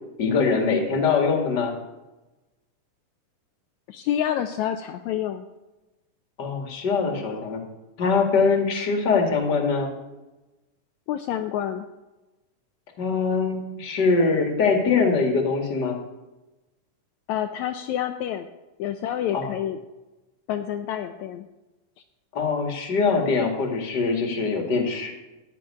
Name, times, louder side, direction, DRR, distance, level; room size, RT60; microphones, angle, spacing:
voice 1, 0.2-1.7 6.4-7.6 8.0-9.9 13.0-16.0 19.3-19.5 22.3-25.1, left 4 dB, 35° left, 3 dB, 2.3 m, -23 dB
voice 2, 3.9-5.4 11.1-11.9 17.3-18.5 18.8-19.8 20.5-21.5, left 10 dB, 75° left, 6 dB, 1.9 m, -28 dB
15.5 x 5.9 x 9.8 m, 1.1 s
omnidirectional pair, 3.6 m